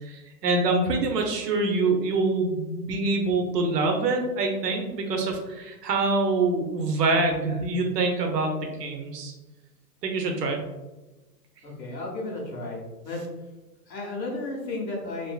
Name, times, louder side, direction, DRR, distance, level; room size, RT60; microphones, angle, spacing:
voice 1, 0.0-9.3 10.0-10.6, right 3 dB, 75° right, 3 dB, 0.7 m, -25 dB
voice 2, 11.6-13.2 13.9-15.3, left 2 dB, 90° left, -1 dB, 1.0 m, -33 dB
2.6 x 2.5 x 2.2 m, 1.1 s
hypercardioid pair, 160°, 49 cm